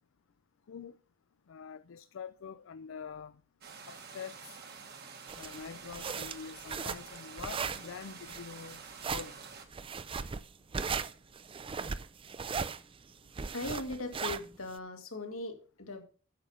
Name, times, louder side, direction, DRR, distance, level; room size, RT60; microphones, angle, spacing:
voice 1, 1.5-3.3 3.9-4.6 5.3-8.8 9.1-9.4, left 6 dB, 65° left, 0.4 m, -45 dB
sound 1, 3.6-9.7, right 5 dB, 50° right, 1.5 m, -49 dB
sound 2, 5.3-14.8, right 5 dB, 25° right, 0.4 m, -37 dB
voice 2, 13.5-16.0, left 2 dB, 85° left, 1.9 m, -39 dB
8.8 x 6.9 x 5.4 m
head